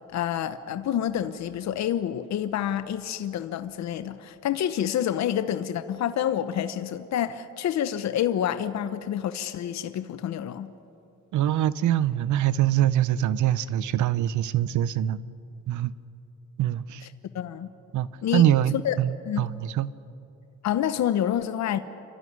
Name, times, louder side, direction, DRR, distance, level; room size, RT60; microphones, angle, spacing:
voice 1, 0.1-10.7 17.3-17.7 18.2-18.4 18.8-19.0 19.3-19.5 20.6-21.8, left 10 dB, 65° left, 0.8 m, -28 dB
voice 2, 11.3-15.2 15.7-15.9 16.6-17.1 17.9-19.9, right 11 dB, 75° right, 0.7 m, -24 dB
28.5 x 12.5 x 9.5 m
cardioid pair, 90°, 30 cm